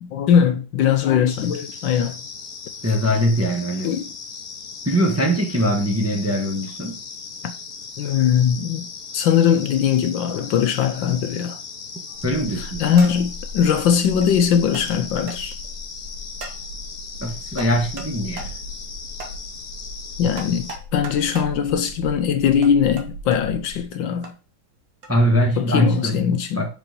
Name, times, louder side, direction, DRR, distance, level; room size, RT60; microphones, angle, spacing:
voice 1, 0.0-2.2 3.8-4.1 7.4-7.5 8.0-8.9 9.1-11.6 12.8-15.5 20.2-24.3 25.6-26.6, left 8 dB, 70° left, 1.3 m, -20 dB
sound 1, 1.3-20.8, left 5 dB, 50° left, 0.6 m, -37 dB
voice 2, 2.8-4.0 4.8-7.0 12.2-12.8 17.2-18.5 25.1-26.2 26.6-26.7, equal, 10° right, 1.0 m, -21 dB
sound 2, 12.1-12.4 13.0-13.4 14.2-14.3 14.7-14.9 15.3-15.4 16.4-16.6 17.6-18.1 18.4-18.5 19.2-19.4 20.4-21.5 22.6-23.4 24.2-24.3 25.0-25.2, right 2 dB, 50° right, 1.7 m, -37 dB
sound 3, 12.1-23.9, left 1 dB, 65° right, 3.3 m, -38 dB
6.0 x 5.0 x 5.3 m
omnidirectional pair, 2.2 m